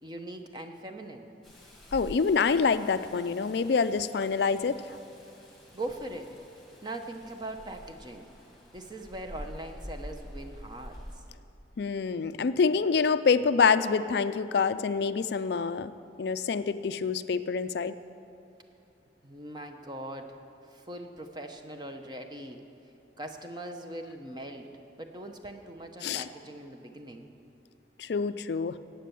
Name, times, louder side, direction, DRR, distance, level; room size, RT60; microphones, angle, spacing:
voice 1, 0.0-1.3 5.7-6.3 6.6-8.3 8.7-11.2 19.2-20.4 20.6-22.6 23.2-24.7 25.0-27.3, right 1 dB, 25° right, 5 dB, 0.9 m, -41 dB
Rain, 1.4-11.2, equal, ahead, 2.0 m, -47 dB
voice 2, 1.9-4.8 11.8-15.9 16.2-17.9 26.0-26.3 28.0-28.8, left 5 dB, 65° left, 12 dB, 0.4 m, -26 dB
15.0 x 9.1 x 7.0 m, 2.8 s
head